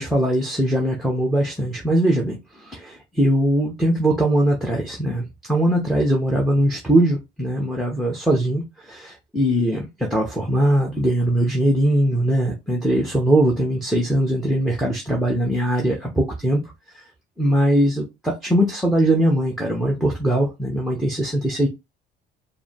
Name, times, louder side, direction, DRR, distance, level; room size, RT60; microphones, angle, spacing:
voice 1, 0.0-2.4 2.7-8.6 8.9-16.6 17.4-21.7, right 1 dB, ahead, -1 dB, 1.0 m, -21 dB
4.7 x 2.0 x 3.6 m, 0.23 s
cardioid pair, 110°, 17 cm